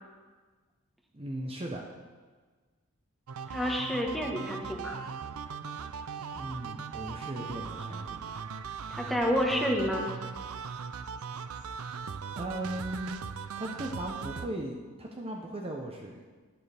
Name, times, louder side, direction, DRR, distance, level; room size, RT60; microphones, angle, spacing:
voice 1, 1.1-1.8 6.3-8.2 12.4-13.2 13.6-16.2, right 1 dB, 25° right, 0 dB, 0.8 m, -37 dB
sound 1, 3.3-14.5, right 6 dB, 75° right, 0.5 m, -39 dB
voice 2, 3.5-5.0 8.9-10.1, equal, ahead, -1 dB, 1.3 m, -29 dB
11.5 x 10.5 x 3.4 m, 1.4 s
head